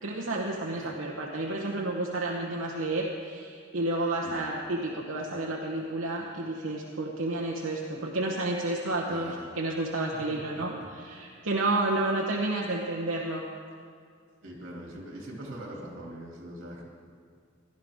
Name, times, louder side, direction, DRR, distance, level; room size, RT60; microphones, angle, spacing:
voice 1, 0.0-13.4, right 2 dB, 90° right, -2 dB, 1.0 m, -31 dB
voice 2, 9.0-9.5 10.0-10.9 14.4-16.8, right 1 dB, 70° right, -1 dB, 2.6 m, -43 dB
17.0 x 11.5 x 3.6 m, 2.2 s
head